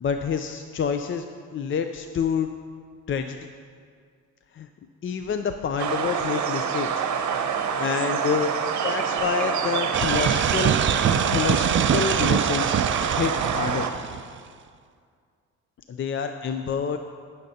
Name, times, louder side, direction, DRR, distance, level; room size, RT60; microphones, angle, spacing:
voice 1, 0.0-1.3 1.5-2.5 3.1-3.4 4.5-4.7 5.0-7.1 7.8-8.5 8.8-10.8 11.1-12.7 13.2-13.9 15.9-17.0, left 7 dB, 40° left, 7 dB, 0.5 m, -27 dB
sound 1, 5.8-13.9, right 7 dB, 60° right, 0.8 m, -26 dB
sound 2, 9.9-14.4, right 8 dB, 40° right, 0.4 m, -24 dB
19.0 x 6.6 x 2.8 m, 2.1 s
supercardioid pair, 70°, 32 cm